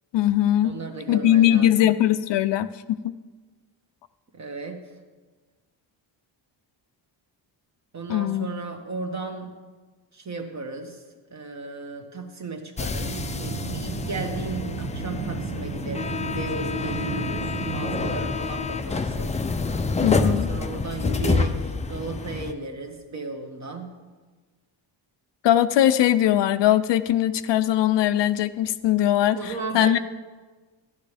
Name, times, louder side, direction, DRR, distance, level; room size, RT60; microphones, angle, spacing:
voice 1, 0.1-0.7 1.1-3.1 8.1-8.5 20.0-20.5 25.4-30.0, left 12 dB, 65° left, 12 dB, 0.5 m, -21 dB
voice 2, 0.6-1.9 4.3-4.9 7.9-9.6 10.1-11.0 11.3-19.4 20.1-24.0 29.3-30.0, right 3 dB, 35° right, 4 dB, 1.3 m, -35 dB
sound 1, 12.8-22.5, left 4 dB, 15° left, 0.4 m, -28 dB
sound 2, 13.0-18.2, right 11 dB, 55° right, 0.5 m, -34 dB
13.5 x 11.0 x 3.4 m, 1.4 s
cardioid pair, 115°, 45 cm